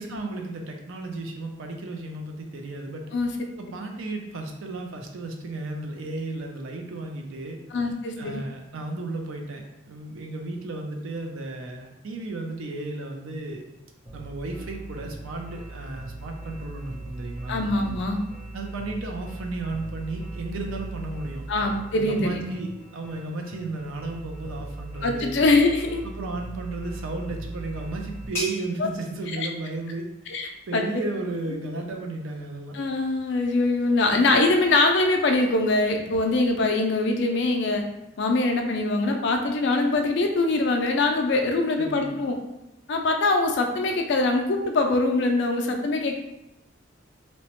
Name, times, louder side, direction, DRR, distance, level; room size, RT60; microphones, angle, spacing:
voice 1, 0.0-3.1 3.6-13.6 14.1-17.6 18.5-21.4 21.9-25.4 26.0-30.1 30.7-32.8 41.8-42.2, right 2 dB, 75° right, 3 dB, 0.4 m, -34 dB
voice 2, 7.7-8.4 17.5-18.2 21.5-22.6 25.0-26.0 30.3-30.8 32.7-37.8 38.2-42.4 42.9-46.2, left 2 dB, 55° left, 4 dB, 0.4 m, -23 dB
sound 1, 14.0-28.3, right 2 dB, 30° right, 0.7 m, -39 dB
sound 2, 27.0-32.4, left 1 dB, 15° left, 0.8 m, -41 dB
2.9 x 2.1 x 2.9 m, 0.88 s
head